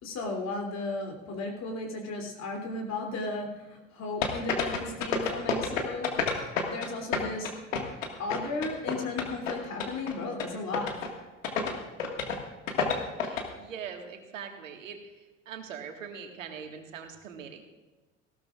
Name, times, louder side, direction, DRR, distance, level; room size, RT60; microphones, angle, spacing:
voice 1, 0.0-7.5 8.2-11.1, left 2 dB, 45° left, 1 dB, 3.1 m, -35 dB
sound 1, 4.2-6.9 7.1-9.5 9.8-10.1 10.4-10.5 10.7-11.1 11.4-11.7 12.0-12.4 12.7-13.4, left 5 dB, 75° left, 1.9 m, -29 dB
voice 2, 13.2-15.1 15.5-17.7, right 7 dB, 75° right, 4 dB, 1.8 m, -42 dB
19.0 x 16.0 x 2.5 m, 1.2 s
figure-of-eight pair, 70°, 39 cm